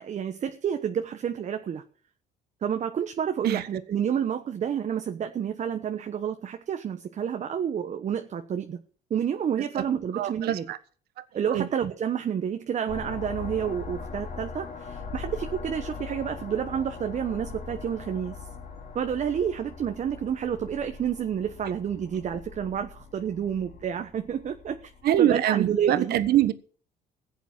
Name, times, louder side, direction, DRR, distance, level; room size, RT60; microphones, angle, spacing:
voice 1, 0.0-1.8 2.6-8.8 9.1-10.7 11.3-18.4 18.9-24.8 25.2-26.2, right 8 dB, 45° right, 7 dB, 1.1 m, -29 dB
voice 2, 10.1-10.8 11.5-11.7 25.0-26.5, right 12 dB, 70° right, 13 dB, 1.3 m, -23 dB
sound 1, 12.9-25.2, left 4 dB, 50° left, 3.0 m, -41 dB
16.0 x 8.2 x 7.4 m, 0.43 s
cardioid pair, 110°, 17 cm